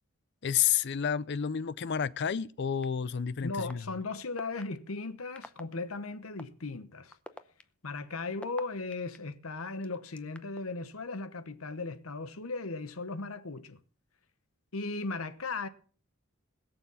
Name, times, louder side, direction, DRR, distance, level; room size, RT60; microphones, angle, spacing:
voice 1, 0.4-3.8, left 8 dB, 55° left, 0.5 m, -30 dB
sound 1, 2.8-2.9 3.7-3.8 4.4-4.6 5.4-5.6 6.4-6.5 7.1-9.2 9.8-10.6, left 1 dB, 5° left, 0.7 m, -45 dB
voice 2, 3.4-7.2 7.8-13.8 14.7-15.7, left 3 dB, 85° left, 1.1 m, -37 dB
21.0 x 7.0 x 5.6 m
head